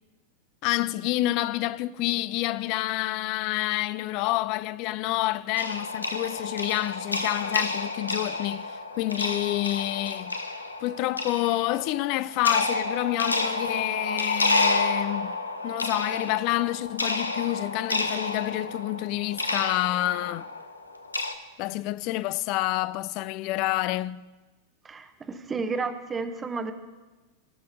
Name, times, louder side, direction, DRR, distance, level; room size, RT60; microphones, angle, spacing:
voice 1, 0.6-10.4 10.8-15.4 15.6-20.5 21.6-24.2, left 17 dB, 45° left, 0.4 m, -28 dB
sound 1, 5.6-21.3, left 2 dB, 80° left, 0.7 m, -30 dB
voice 2, 24.8-26.7, right 4 dB, 15° right, 0.9 m, -32 dB
17.5 x 6.0 x 4.8 m
figure-of-eight pair, 90°, 0 cm